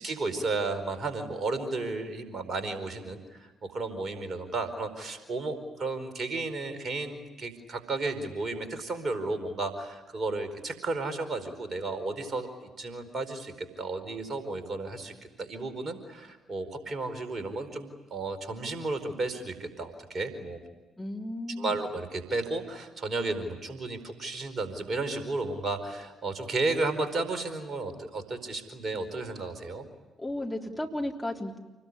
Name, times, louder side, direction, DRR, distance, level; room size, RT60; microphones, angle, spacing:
voice 1, 0.0-12.5 12.8-15.1 15.4-20.6 21.6-29.9, right 3 dB, 40° right, 10 dB, 4.7 m, -33 dB
voice 2, 21.0-21.8 30.2-31.6, left 1 dB, 10° left, 0 dB, 3.6 m, -34 dB
28.5 x 21.0 x 10.0 m, 1.2 s
figure-of-eight pair, 45°, 0 cm